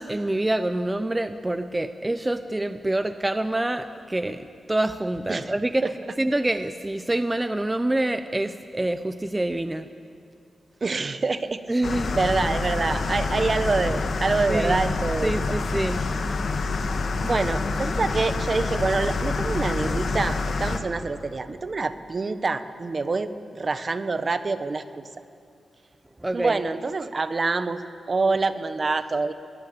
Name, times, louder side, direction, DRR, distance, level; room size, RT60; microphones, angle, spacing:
voice 1, 0.0-4.4 4.7-5.8 6.2-9.9 11.7-12.2 14.5-14.8 15.2-16.0 26.2-26.6, right 1 dB, 15° right, 10 dB, 0.8 m, -26 dB
voice 2, 10.8-11.6 12.1-15.5 17.2-23.3 23.6-25.0 26.3-27.8 28.1-29.3, right 3 dB, 40° right, 12 dB, 1.2 m, -26 dB
sound 1, 11.8-20.8, left 3 dB, 65° left, 1.8 m, -27 dB
22.0 x 20.0 x 8.6 m, 2.5 s
cardioid pair, 80°, 0 cm